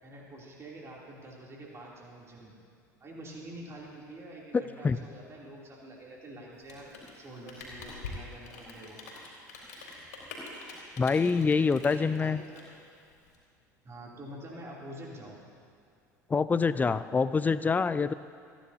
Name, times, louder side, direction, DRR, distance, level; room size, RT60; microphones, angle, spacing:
voice 1, 0.0-2.5 3.0-9.0 11.9-12.6 13.8-15.4, right 1 dB, 30° right, -3 dB, 3.1 m, -46 dB
voice 2, 4.5-5.0 11.0-12.4 16.3-18.1, left 5 dB, 15° left, 15 dB, 0.4 m, -26 dB
Rain, 6.5-13.3, left 3 dB, 70° left, 3.4 m, -45 dB
29.5 x 10.0 x 2.8 m, 2.3 s
figure-of-eight pair, 65°, 9 cm